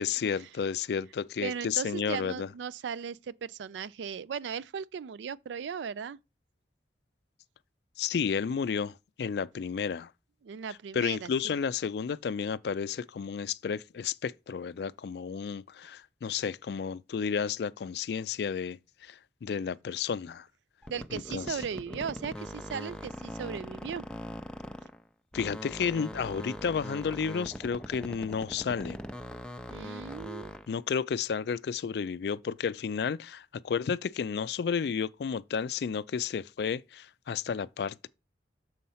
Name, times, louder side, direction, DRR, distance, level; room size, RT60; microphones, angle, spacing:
voice 1, 0.0-2.5 8.0-10.1 10.9-20.5 21.1-21.6 25.3-29.0 30.7-38.1, left 6 dB, 65° left, 0.3 m, -32 dB
voice 2, 1.4-6.2 10.4-11.5 20.9-24.1 29.7-30.5, right 7 dB, 85° right, 0.4 m, -37 dB
sound 1, 20.8-25.0 25.3-30.7, equal, 5° left, 0.5 m, -41 dB
6.3 x 4.3 x 5.5 m
head